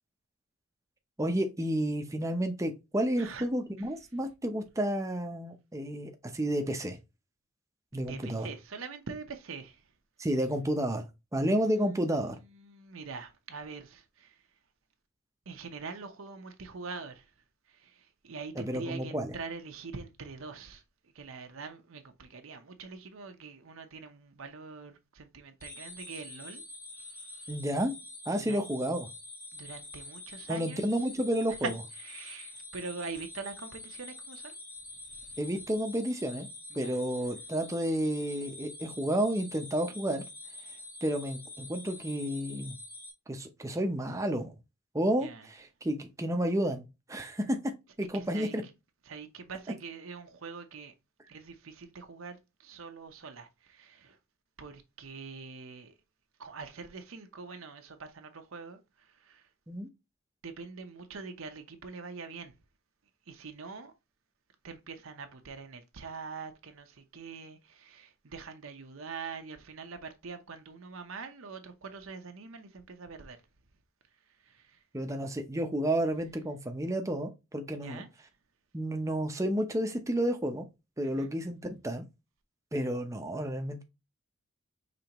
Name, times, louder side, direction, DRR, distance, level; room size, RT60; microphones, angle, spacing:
voice 1, 1.2-7.0 7.9-8.5 10.2-11.0 11.3-12.4 18.6-19.4 27.5-27.9 28.3-29.1 30.5-31.7 35.4-36.5 36.7-40.2 41.0-42.7 43.3-44.5 44.9-47.7 48.0-48.6 59.7-59.9 74.9-78.0 78.7-80.7 81.0-81.6 81.8-82.0 82.7-83.8, right 1 dB, 15° right, 0.6 m, -31 dB
voice 2, 7.9-9.8 11.4-11.9 12.3-14.4 15.5-17.3 17.7-20.8 21.1-26.6 27.1-27.5 28.5-28.6 29.5-30.8 31.6-31.7 32.0-34.6 35.1-35.4 36.7-37.0 45.2-45.5 48.1-48.6 49.1-50.9 51.3-54.2 54.6-55.9 56.4-59.5 60.4-62.5 63.3-63.9 64.6-73.4 74.4-74.8 77.8-78.1 81.0-81.3, right 4 dB, 70° right, 0.7 m, -44 dB
sound 1, 25.6-43.1, left 2 dB, 15° left, 0.9 m, -46 dB
5.2 x 3.3 x 2.9 m
head